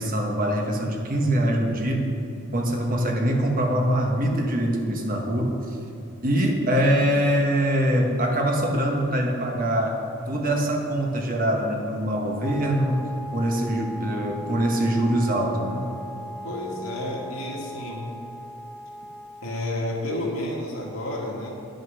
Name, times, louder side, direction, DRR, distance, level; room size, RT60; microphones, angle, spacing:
voice 1, 0.0-2.1 2.5-5.6 6.2-13.0 13.3-15.9, right 1 dB, 40° right, 1 dB, 1.3 m, -23 dB
Wind instrument woodwind instrument, 12.4-19.8, equal, 5° left, 0.3 m, -39 dB
voice 2, 16.4-18.1 19.4-21.5, left 1 dB, 80° left, -2 dB, 2.1 m, -30 dB
10.5 x 6.5 x 6.2 m, 2.8 s
head